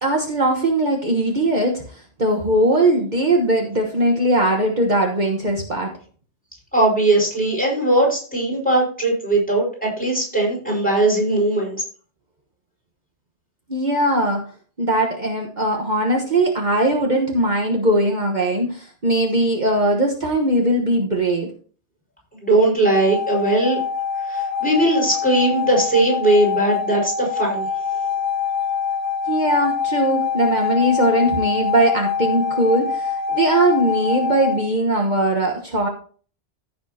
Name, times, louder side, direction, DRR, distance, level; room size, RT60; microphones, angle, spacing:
voice 1, 0.0-5.9 13.7-14.4 14.8-21.5 29.3-35.9, right 1 dB, 45° right, 1 dB, 1.4 m, -20 dB
voice 2, 6.7-11.8 22.4-23.8 24.2-27.7, right 2 dB, 5° left, -4 dB, 5.3 m, -19 dB
sound 1, 22.9-34.6, left 6 dB, 90° left, 2.6 m, -25 dB
15.5 x 6.8 x 2.9 m, 0.42 s
omnidirectional pair, 1.1 m